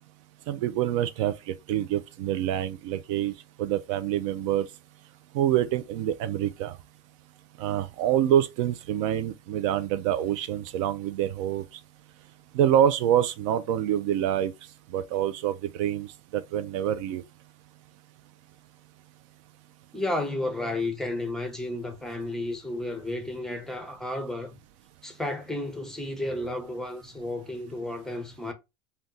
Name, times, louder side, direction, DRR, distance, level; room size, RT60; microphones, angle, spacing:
voice 1, 0.5-3.3 3.6-4.7 5.3-6.8 7.6-11.6 12.5-14.5 14.9-16.1 16.3-17.2, right 11 dB, 75° right, 0.4 m, -26 dB
voice 2, 19.9-24.6 25.0-28.5, left 1 dB, 5° left, 0.6 m, -32 dB
2.6 x 2.3 x 3.5 m
supercardioid pair, 145°, 16 cm